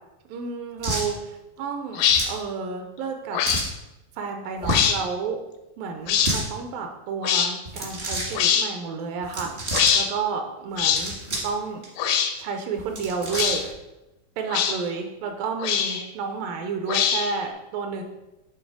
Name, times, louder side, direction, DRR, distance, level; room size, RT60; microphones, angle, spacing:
voice 1, 0.3-3.4 4.2-5.4 5.8-9.5 9.9-11.1 11.4-11.8 12.4-13.6 14.4-18.0, right 5 dB, 80° right, 4 dB, 2.3 m, -31 dB
sound 1, 0.8-1.1 2.1-2.4 3.4-3.7 4.6-5.0 6.0-6.5 7.6-8.3 9.2-9.9 10.8-11.5 11.8-11.9 12.8-13.7, right 1 dB, 55° right, 0.7 m, -29 dB
sound 2, 1.9-2.2 3.3-3.6 4.6-5.0 6.1-6.3 7.2-7.5 8.3-8.7 9.7-10.1 10.8-11.0 12.0-12.3 13.3-13.6 14.5-14.8 15.6-16.1 16.9-17.4, left 8 dB, 80° left, 1.9 m, -22 dB
8.6 x 3.0 x 4.7 m, 0.97 s
omnidirectional pair, 4.1 m